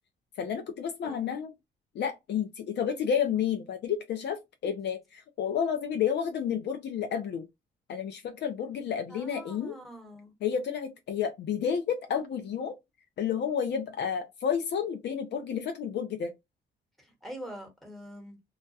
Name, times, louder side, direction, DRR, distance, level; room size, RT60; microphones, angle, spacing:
voice 1, 0.4-1.5 1.9-5.0 5.4-7.5 7.9-9.8 10.4-12.7 13.2-16.3, left 7 dB, 60° left, 0.5 m, -30 dB
voice 2, 1.0-1.3 9.1-10.3 17.0-18.4, equal, ahead, 1.2 m, -44 dB
2.3 x 2.1 x 2.6 m
cardioid pair, 90°, 20 cm